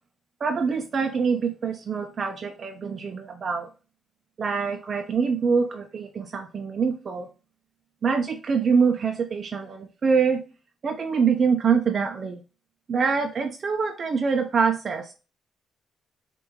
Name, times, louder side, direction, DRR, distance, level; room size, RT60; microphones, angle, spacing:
voice 1, 0.4-3.7 4.4-7.3 8.0-10.4 10.8-12.4 12.9-15.1, right 5 dB, 50° right, 4 dB, 0.6 m, -25 dB
6.4 x 2.7 x 2.9 m, 0.33 s
cardioid pair, 95°, 0 cm